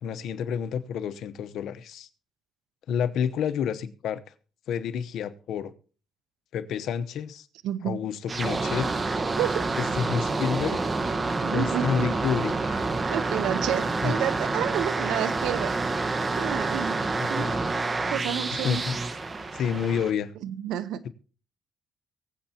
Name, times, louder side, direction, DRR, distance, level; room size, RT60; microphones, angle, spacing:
voice 1, 0.0-2.1 2.9-4.2 4.7-5.7 6.5-7.5 7.8-8.9 9.8-10.8 11.5-12.8 14.0-14.1 17.2-17.6 17.9-18.2 18.5-19.0 19.5-20.3, left 7 dB, 75° left, 1.0 m, -29 dB
voice 2, 7.6-8.0 9.4-9.7 11.4-12.1 13.1-15.7 16.4-17.0 17.3-17.5 18.1-18.8 20.4-21.1, right 11 dB, 90° right, 0.8 m, -30 dB
sound 1, 8.3-20.1, right 3 dB, 30° right, 1.3 m, -28 dB
23.5 x 7.9 x 2.9 m
cardioid pair, 90°, 0 cm